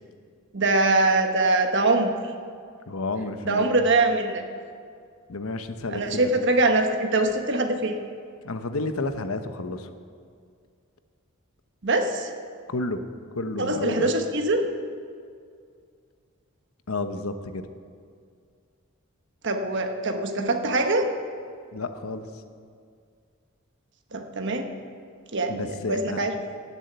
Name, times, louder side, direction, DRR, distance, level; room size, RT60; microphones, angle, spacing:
voice 1, 0.5-2.1 3.4-4.4 5.9-8.0 11.8-12.3 13.6-14.6 19.4-21.1 24.1-24.7 25.3-26.3, right 2 dB, 55° right, 5 dB, 1.3 m, -23 dB
voice 2, 2.9-3.8 5.3-6.4 8.4-9.9 12.7-13.0 13.3-14.1 16.9-17.7 21.7-22.4 25.5-26.2, left 2 dB, 80° left, 8 dB, 1.0 m, -31 dB
17.0 x 7.3 x 8.1 m, 2.2 s
head